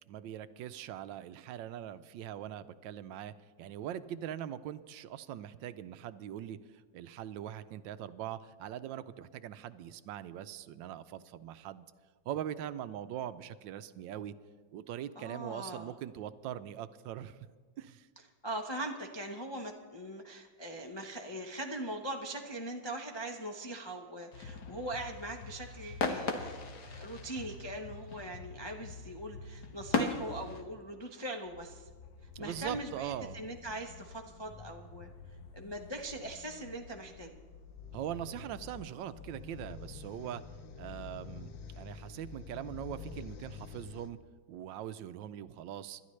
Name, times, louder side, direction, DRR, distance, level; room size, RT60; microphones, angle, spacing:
voice 1, 0.1-3.3 3.6-6.6 6.9-11.8 12.3-14.3 14.7-17.4 17.8-18.1 32.3-33.5 37.9-40.4 40.8-44.2 44.5-46.0, right 11 dB, 80° right, 13 dB, 1.3 m, -41 dB
voice 2, 15.2-15.9 18.2-26.6 26.9-31.9 32.4-35.1 35.5-37.3, right 1 dB, 40° left, 1 dB, 0.3 m, -41 dB
sound 1, 24.3-30.6, left 4 dB, 60° left, 1.6 m, -38 dB
sound 2, 31.5-44.1, left 5 dB, 85° left, 1.6 m, -49 dB
26.5 x 12.0 x 3.2 m, 1.5 s
omnidirectional pair, 2.1 m